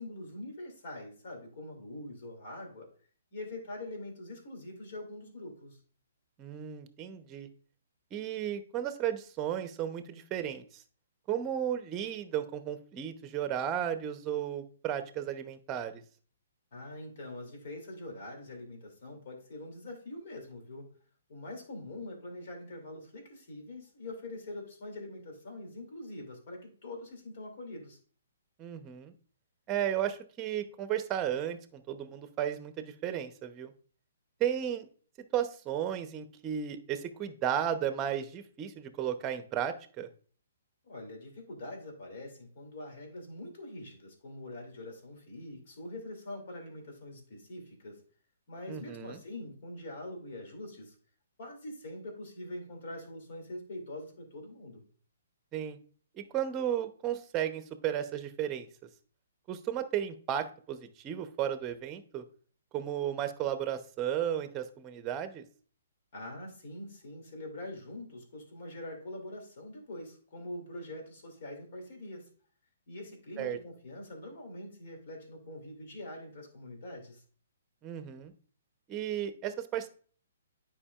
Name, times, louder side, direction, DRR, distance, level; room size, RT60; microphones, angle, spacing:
voice 1, 0.0-2.9 3.3-5.8 16.7-20.9 21.3-28.0 40.8-48.0 48.5-51.0 51.4-54.8 66.1-72.3 72.9-77.2, left 1 dB, 60° left, 2 dB, 2.6 m, -44 dB
voice 2, 6.4-7.5 8.1-10.8 11.3-16.0 28.6-29.1 29.7-33.7 34.4-34.9 35.3-40.1 48.7-49.2 55.5-55.8 56.1-58.7 59.5-62.2 62.7-65.4 73.4-73.6 77.8-78.3 78.9-79.9, right 10 dB, 25° right, 10 dB, 0.8 m, -34 dB
9.8 x 5.1 x 2.4 m, 0.43 s
hypercardioid pair, 135°, 0 cm